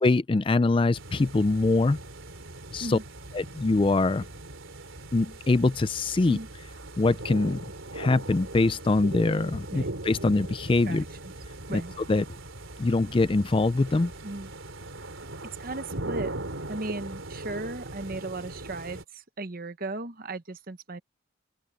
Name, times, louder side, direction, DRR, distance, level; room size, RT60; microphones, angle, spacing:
voice 1, 0.0-2.0 2.7-3.0 3.3-4.2 5.1-6.4 7.0-7.6 7.9-11.0 11.7-11.8 12.1-12.2 12.8-14.1, left 3 dB, 25° left, 0.4 m, -23 dB
sound 1, 0.9-19.0, right 2 dB, 90° right, 3.6 m, -40 dB
voice 2, 10.8-11.3 11.7-11.9 14.2-14.5 15.6-16.3 16.7-21.0, right 2 dB, 45° right, 1.1 m, -36 dB
open air
head